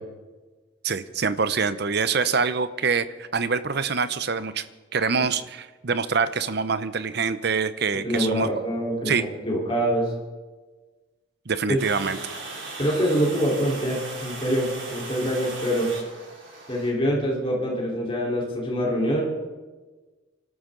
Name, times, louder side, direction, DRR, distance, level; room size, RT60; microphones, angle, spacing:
voice 1, 0.8-4.6 4.9-8.5 9.1-9.2 11.5-12.2, right 5 dB, 55° right, 13 dB, 0.7 m, -25 dB
voice 2, 8.0-10.1 11.7-11.8 12.8-15.9 16.7-19.2, equal, 25° left, -3 dB, 3.9 m, -25 dB
Water, 11.8-16.9, right 3 dB, 70° right, 4.8 m, -38 dB
25.5 x 13.0 x 3.9 m, 1.3 s
head